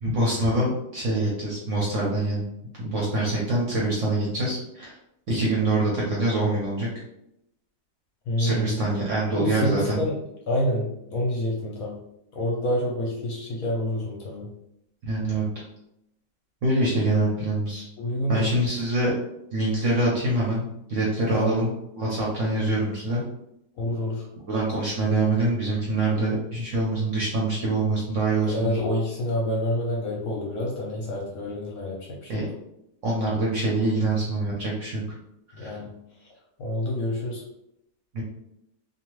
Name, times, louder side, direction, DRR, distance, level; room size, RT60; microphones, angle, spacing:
voice 1, 0.0-2.5 2.8-4.9 5.3-6.9 8.4-10.0 15.0-15.4 16.6-17.8 18.3-19.1 19.5-21.7 22.0-23.2 24.5-28.8 32.3-32.4 33.0-35.0 35.6-35.8 38.1-38.2, right 2 dB, 60° right, -5 dB, 0.8 m, -25 dB
voice 2, 8.3-8.7 9.3-10.1 10.5-12.0 12.4-14.5 18.0-18.5 21.3-21.5 23.8-24.2 28.5-32.4 35.5-35.9 36.6-37.4, left 1 dB, 65° left, -3 dB, 1.0 m, -27 dB
2.7 x 2.3 x 3.0 m, 0.80 s
omnidirectional pair, 1.9 m